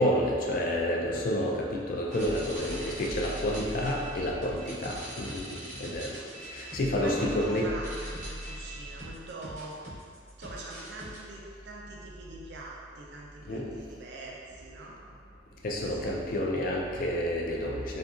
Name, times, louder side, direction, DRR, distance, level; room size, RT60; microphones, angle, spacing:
voice 1, 0.0-6.2 6.5-7.7 13.5-13.8 15.6-18.0, left 1 dB, 50° left, -1 dB, 0.3 m, -29 dB
sound 1, 2.1-11.2, right 1 dB, 40° right, 0.7 m, -40 dB
voice 2, 5.5-5.9 6.2-6.3 7.0-9.8 10.4-15.0 15.9-16.2, right 2 dB, 65° right, -3 dB, 0.4 m, -43 dB
2.7 x 2.5 x 2.3 m, 2.1 s
head